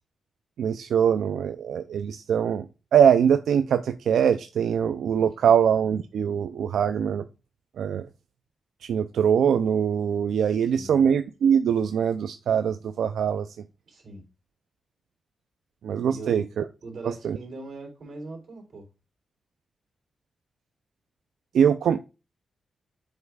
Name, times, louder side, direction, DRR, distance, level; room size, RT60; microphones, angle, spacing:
voice 1, 0.6-2.6 2.9-7.2 7.8-8.1 8.8-13.5 15.8-16.6 17.2-17.4 21.5-22.0, right 8 dB, 90° right, 0.4 m, -22 dB
voice 2, 10.3-11.0 13.9-14.3 16.1-16.5 16.8-18.9, right 3 dB, 55° right, 3.3 m, -40 dB
7.9 x 5.4 x 2.4 m
cardioid pair, 105°, 0 cm